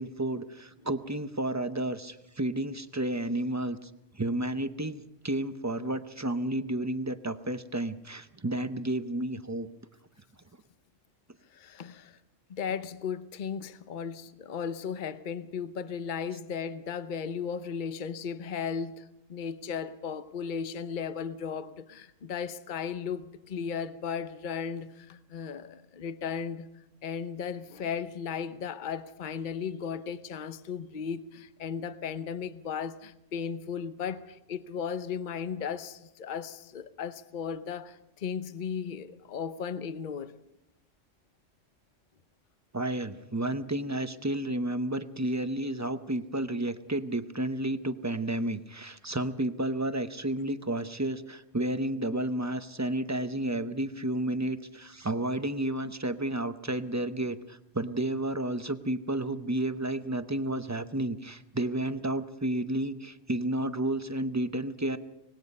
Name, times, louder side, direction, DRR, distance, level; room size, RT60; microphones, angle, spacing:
voice 1, 0.0-9.7 16.3-16.4 42.7-65.0, right 1 dB, 15° right, 0.6 m, -31 dB
voice 2, 11.5-12.1 12.5-26.7 27.0-40.3, left 6 dB, 45° left, 0.9 m, -36 dB
25.0 x 19.5 x 5.4 m
omnidirectional pair, 1.3 m